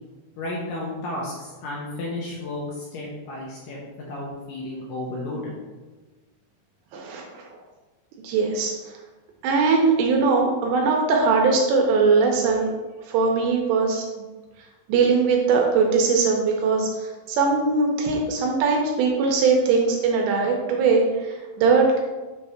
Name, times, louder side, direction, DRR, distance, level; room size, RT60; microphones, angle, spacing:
voice 1, 0.4-3.8 4.1-5.5, left 2 dB, 80° left, -4 dB, 2.4 m, -32 dB
voice 2, 6.9-7.4 8.2-8.9 9.4-12.7 13.1-14.0 14.9-22.0, right 4 dB, 80° right, 1 dB, 2.7 m, -21 dB
7.1 x 3.3 x 5.6 m, 1.2 s
omnidirectional pair, 5.7 m